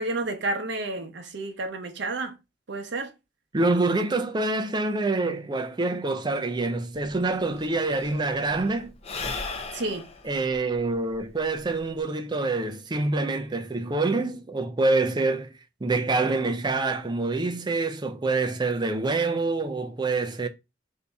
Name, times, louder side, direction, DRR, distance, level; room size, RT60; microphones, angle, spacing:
voice 1, 0.0-2.4 2.7-3.1 9.7-10.0, right 2 dB, 65° right, 0.7 m, -30 dB
voice 2, 3.5-8.9 10.2-15.5 15.8-20.5, right 3 dB, 25° right, 0.4 m, -26 dB
Sigh / Breathing, 7.0-7.1 7.3-12.0, left 4 dB, 35° left, 0.6 m, -37 dB
4.0 x 2.7 x 3.4 m
head